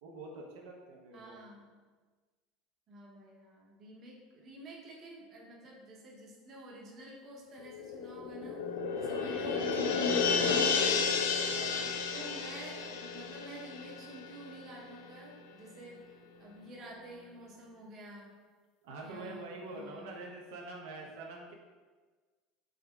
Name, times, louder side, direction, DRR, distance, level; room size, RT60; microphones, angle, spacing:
voice 1, 0.0-1.4 9.0-9.4 11.5-12.0 13.2-13.3 18.8-21.5, right 2 dB, 85° right, -1 dB, 0.5 m, -46 dB
voice 2, 1.1-1.7 2.9-8.6 9.0-11.1 12.1-16.0 16.4-18.4 19.0-20.2, right 1 dB, 40° right, -2 dB, 0.7 m, -49 dB
sound 1, 7.7-14.6 15.0-15.1, left 5 dB, 85° left, 0.3 m, -32 dB
3.6 x 3.4 x 2.2 m, 1.4 s
supercardioid pair, 140°, 0 cm